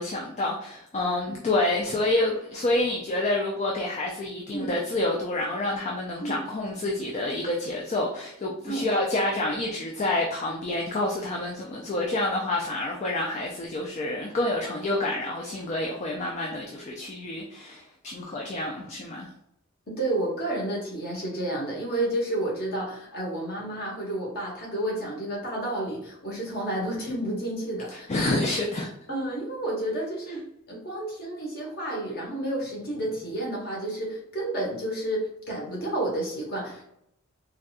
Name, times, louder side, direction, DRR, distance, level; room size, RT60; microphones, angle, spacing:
voice 1, 0.0-19.3 28.1-28.9, left 2 dB, 35° left, -1 dB, 0.4 m, -28 dB
voice 2, 19.9-28.1 29.1-36.9, right 1 dB, 50° left, -2 dB, 1.2 m, -31 dB
4.0 x 2.3 x 2.4 m, 0.75 s
head